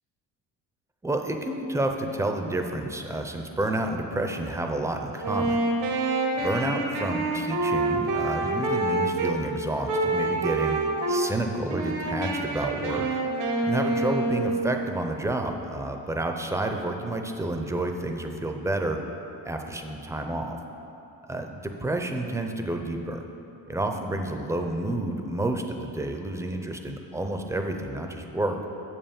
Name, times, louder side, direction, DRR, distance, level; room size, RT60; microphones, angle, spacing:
voice 1, 1.0-5.6 6.4-10.8 11.1-13.0 13.6-19.0 19.5-20.6 21.3-23.2 23.7-28.6, right 1 dB, 10° right, 4 dB, 0.4 m, -30 dB
Wind instrument woodwind instrument, 5.2-9.4 9.9-11.3 11.7-14.9, right 2 dB, 85° right, 1.2 m, -27 dB
7.1 x 5.6 x 7.0 m, 2.9 s
cardioid pair, 145°, 41 cm